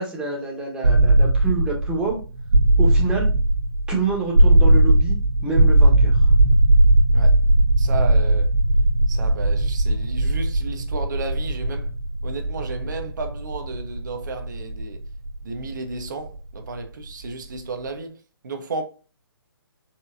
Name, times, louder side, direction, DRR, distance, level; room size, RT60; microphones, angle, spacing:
voice 1, 0.0-2.2 2.8-3.3 3.9-5.2 5.4-6.2, right 3 dB, 5° right, 1.1 m, -27 dB
sound 1, 0.8-16.7, right 1 dB, 80° right, 1.0 m, -18 dB
voice 2, 7.8-8.5 9.1-11.9 12.2-15.0 15.4-18.1 18.4-18.8, right 3 dB, 50° right, 0.8 m, -33 dB
4.3 x 3.7 x 2.5 m
figure-of-eight pair, 130°, 13 cm